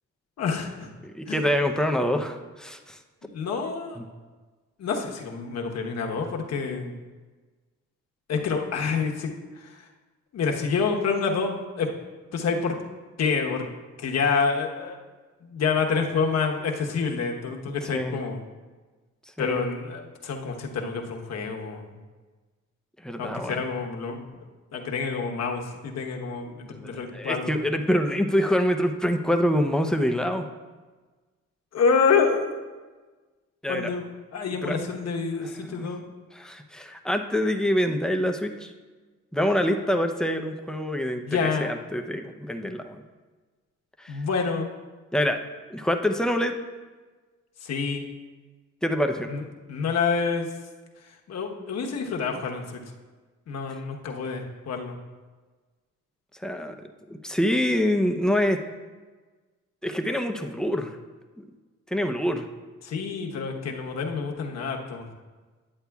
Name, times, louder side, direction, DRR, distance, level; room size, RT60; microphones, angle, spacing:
voice 1, 0.4-0.9 1.3-1.5 3.2-4.0 4.8-6.9 8.3-9.8 10.3-11.9 12.3-12.7 13.2-13.7 14.0-15.0 15.4-18.4 19.4-22.0 23.2-24.4 24.7-27.5 31.7-32.6 33.7-36.0 41.2-41.7 44.1-44.7 47.6-48.0 49.3-49.4 49.7-50.5 51.0-52.8 53.5-55.0 62.8-65.1, left 5 dB, 60° left, 1 dB, 1.1 m, -28 dB
voice 2, 1.0-3.0 4.0-4.1 17.9-18.2 19.4-19.6 23.0-23.6 26.7-30.4 33.6-33.9 34.6-34.8 35.7-35.9 36.3-38.7 39.3-43.0 44.0-44.2 45.1-45.4 45.7-46.5 48.8-49.3 56.4-56.8 57.1-58.6 59.8-61.0 61.9-62.4, equal, ahead, 5 dB, 0.6 m, -25 dB
9.8 x 8.0 x 2.3 m, 1.3 s
cardioid pair, 90°, 30 cm